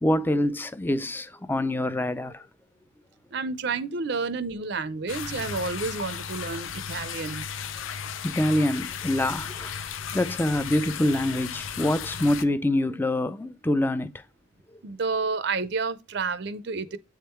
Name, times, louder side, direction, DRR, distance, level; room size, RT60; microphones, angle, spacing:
voice 1, 0.0-2.5 8.2-14.1 14.7-14.8, left 1 dB, 10° left, 0.4 m, -25 dB
voice 2, 3.3-7.5 14.8-17.0, right 4 dB, 60° right, 0.5 m, -30 dB
sound 1, 5.1-12.4, left 7 dB, 85° left, 0.5 m, -35 dB
8.3 x 3.6 x 4.3 m
head